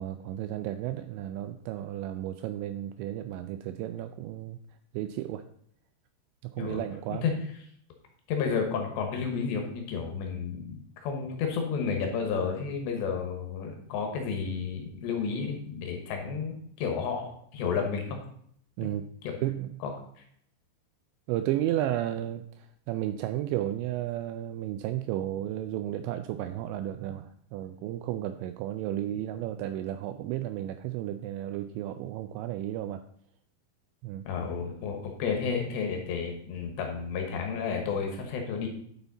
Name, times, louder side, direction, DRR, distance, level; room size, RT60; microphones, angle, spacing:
voice 1, 0.0-4.6 4.9-5.4 6.4-7.3 18.8-19.1 19.4-19.8 21.3-33.0 34.0-34.3, right 12 dB, 85° right, 9 dB, 2.6 m, -33 dB
voice 2, 8.3-18.2 18.8-18.9 19.2-19.4 19.8-19.9 34.3-38.7, left 6 dB, 70° left, 3 dB, 3.3 m, -31 dB
9.7 x 7.1 x 4.0 m, 0.66 s
omnidirectional pair, 5.6 m